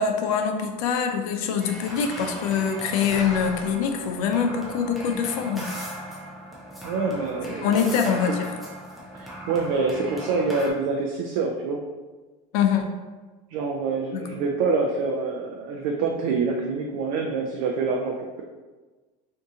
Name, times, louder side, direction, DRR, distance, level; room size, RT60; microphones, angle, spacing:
voice 1, 0.0-5.7 7.6-8.5 12.5-12.9 14.1-14.2, left 7 dB, 85° left, 5 dB, 0.5 m, -24 dB
sound 1, 1.6-10.7, equal, ahead, 0.4 m, -37 dB
voice 2, 6.8-8.2 9.1-11.8 13.5-18.4, right 4 dB, 75° right, 1 dB, 0.4 m, -26 dB
2.7 x 2.7 x 3.6 m, 1.3 s
cardioid pair, 160°, 17 cm